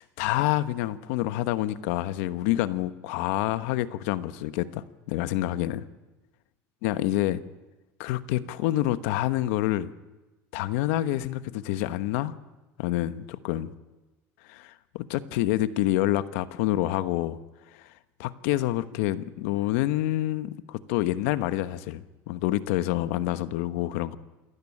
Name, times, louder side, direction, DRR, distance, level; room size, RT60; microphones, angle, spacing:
voice 1, 0.0-5.8 6.8-7.4 8.0-9.9 10.5-12.3 12.8-13.7 14.5-17.4 18.2-24.2, left 14 dB, 85° left, 13 dB, 1.2 m, -27 dB
27.5 x 14.0 x 10.0 m, 1.1 s
cardioid pair, 130°, 7 cm